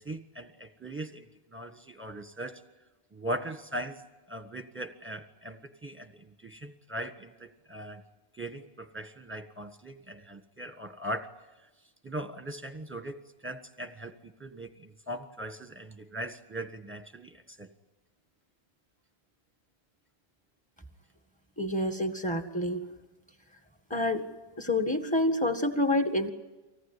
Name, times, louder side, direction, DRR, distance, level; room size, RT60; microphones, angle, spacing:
voice 1, 0.0-2.6 3.1-4.0 4.3-8.0 8.3-11.3 12.0-17.7, right 1 dB, 10° right, 8 dB, 1.3 m, -40 dB
voice 2, 21.6-22.8 23.9-24.2 24.6-26.3, left 1 dB, 5° left, 6 dB, 1.7 m, -28 dB
24.5 x 18.0 x 9.8 m, 1.1 s
omnidirectional pair, 1.0 m